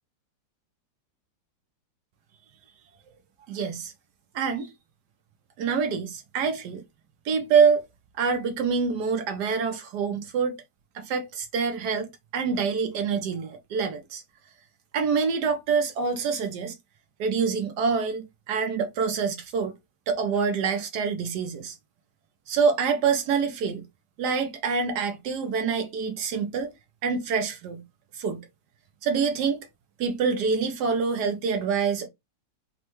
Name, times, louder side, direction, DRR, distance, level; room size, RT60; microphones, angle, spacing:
voice 1, 3.5-3.9 4.3-4.7 5.6-6.8 7.2-7.8 8.2-10.6 10.9-14.2 14.9-16.7 17.2-19.7 20.1-21.8 22.5-23.8 24.2-26.7 27.0-27.8 28.1-28.4 29.0-29.7 30.0-32.1, right 5 dB, 70° right, 1.2 m, -26 dB
4.3 x 2.2 x 3.0 m
omnidirectional pair, 2.0 m